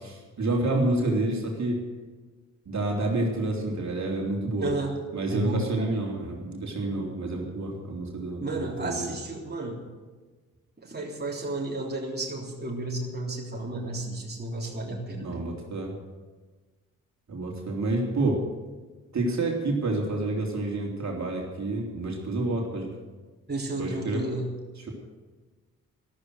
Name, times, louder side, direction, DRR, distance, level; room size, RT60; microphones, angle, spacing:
voice 1, 0.0-1.8 2.6-4.7 5.1-9.1 15.2-15.9 17.3-18.4 19.1-22.9 23.8-24.2 24.8-24.9, right 2 dB, 45° right, -1 dB, 3.4 m, -29 dB
voice 2, 4.6-4.9 5.3-6.0 8.4-9.8 10.8-15.4 23.5-24.5, right 2 dB, 25° right, -2 dB, 3.4 m, -32 dB
13.5 x 13.0 x 6.5 m, 1.3 s
hypercardioid pair, 40°, 40 cm